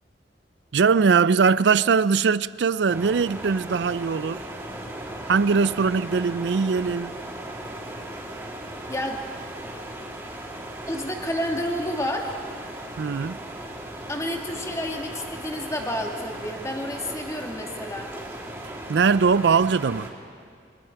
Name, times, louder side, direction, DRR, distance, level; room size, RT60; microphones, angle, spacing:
voice 1, 0.7-4.5 5.3-7.1 13.0-13.4 18.9-20.1, right 5 dB, 70° right, 0.4 m, -21 dB
sound 1, 2.9-20.1, right 1 dB, 15° right, 3.3 m, -37 dB
voice 2, 10.9-12.3 14.1-18.1, left 1 dB, 15° left, 1.9 m, -30 dB
28.0 x 24.0 x 4.6 m
head